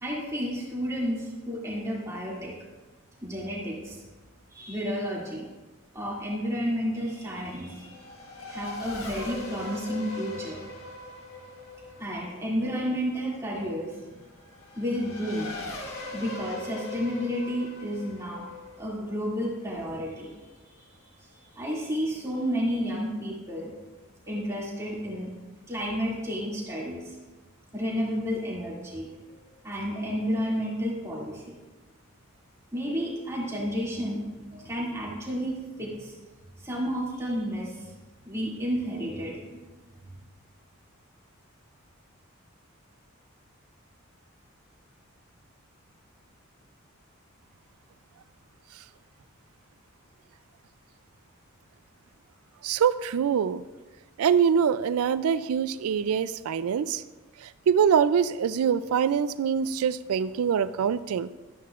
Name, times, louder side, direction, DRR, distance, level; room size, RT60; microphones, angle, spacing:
voice 1, 0.0-2.5 3.2-4.0 4.5-5.4 5.9-8.0 8.5-10.6 12.0-14.3 14.8-15.5 16.1-18.4 18.8-20.3 21.5-23.7 24.3-25.3 25.7-27.2 27.7-29.1 29.6-31.4 32.7-34.2 34.5-36.1 36.6-37.9 38.2-39.5, equal, 15° right, -5 dB, 2.3 m, -31 dB
Race car auto racing / Accelerating revving vroom, 6.2-20.2, left 2 dB, 80° left, 1.5 m, -41 dB
voice 2, 52.6-53.6 54.2-57.0 57.4-61.3, right 7 dB, 90° right, 14 dB, 0.4 m, -24 dB
12.5 x 10.0 x 2.4 m, 1.2 s
head